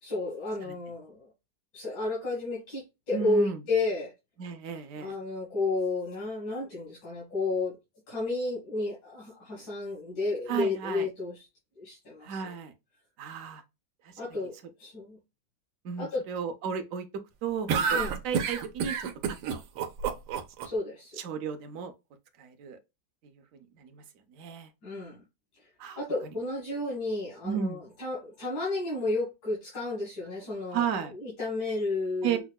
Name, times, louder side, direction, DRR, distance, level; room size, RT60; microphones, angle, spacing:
voice 1, 0.0-1.3 1.7-4.1 5.0-7.7 8.1-11.5 11.8-12.4 14.2-15.2 16.0-16.2 17.9-18.2 20.6-21.2 24.8-25.2 26.0-30.8 31.2-32.4, left 2 dB, 75° left, 2.0 m, -32 dB
voice 2, 3.1-3.6 4.4-5.1 10.5-11.1 12.2-12.7 13.2-13.6 14.0-14.2 15.8-17.1 17.4-19.6 21.2-21.9 22.4-22.8 23.5-24.0 24.3-24.7 25.8-26.3 27.4-27.8 30.7-31.1 32.2-32.4, right 7 dB, 70° right, 0.7 m, -34 dB
sound 1, 17.7-20.7, right 6 dB, 90° right, 1.4 m, -28 dB
5.5 x 2.1 x 2.2 m
omnidirectional pair, 2.0 m